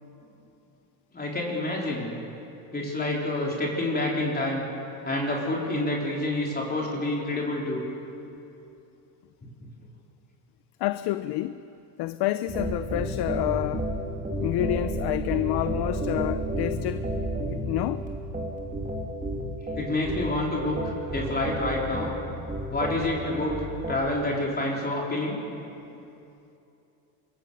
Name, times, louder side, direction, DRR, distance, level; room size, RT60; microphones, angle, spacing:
voice 1, 1.1-2.2 2.7-4.7 5.0-7.8 19.7-22.1 22.7-25.4, left 1 dB, 20° left, -3 dB, 3.9 m, -28 dB
voice 2, 10.8-11.6 12.0-13.9 14.4-17.1 17.5-18.0, left 15 dB, 55° left, 13 dB, 0.7 m, -28 dB
sound 1, 12.5-24.1, right 1 dB, 15° right, 3.2 m, -31 dB
24.5 x 22.5 x 6.9 m, 2.8 s
cardioid pair, 120°, 48 cm